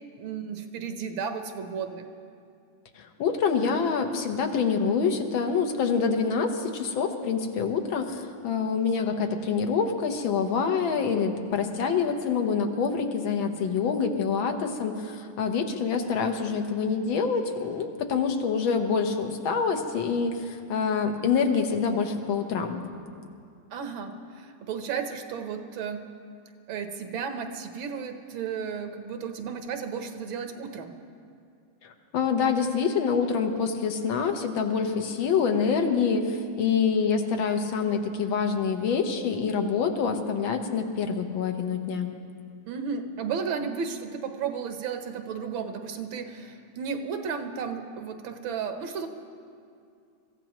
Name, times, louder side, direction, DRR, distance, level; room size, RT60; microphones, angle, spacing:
voice 1, 0.2-2.1 23.7-26.0 26.7-30.9 42.7-49.1, right 6 dB, 75° right, 7 dB, 1.7 m, -33 dB
voice 2, 3.0-22.8 31.8-42.1, left 5 dB, 80° left, 5 dB, 1.8 m, -26 dB
24.5 x 15.0 x 3.0 m, 2.4 s
omnidirectional pair, 2.2 m